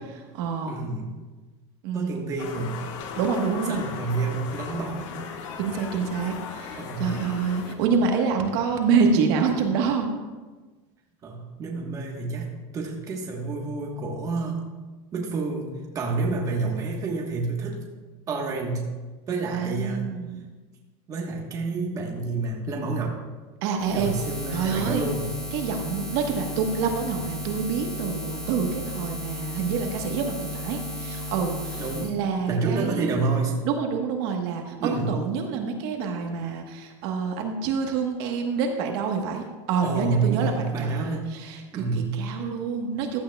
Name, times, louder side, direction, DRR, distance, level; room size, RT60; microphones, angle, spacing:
voice 1, 0.1-0.8 1.8-2.1 3.2-3.9 5.6-10.1 19.5-20.4 23.6-24.1 24.5-25.0 25.5-33.2 33.6-43.2, right 5 dB, 55° right, 3 dB, 1.2 m, -27 dB
voice 2, 0.7-1.1 1.9-2.8 3.6-5.1 6.7-7.1 8.4-8.5 11.2-12.5 12.7-14.6 15.1-15.7 15.9-17.8 18.3-18.8 19.3-20.0 21.1-23.2 23.9-25.3 31.8-32.2 32.5-33.5 34.8-35.1 39.8-41.3 41.7-42.2, right 3 dB, 20° right, 0 dB, 1.2 m, -28 dB
sound 1, 2.4-7.7, left 6 dB, 85° left, 1.3 m, -37 dB
Buzz, 23.8-32.1, left 1 dB, 5° left, 1.6 m, -34 dB
15.0 x 11.0 x 2.3 m, 1.3 s
supercardioid pair, 175°, 16 cm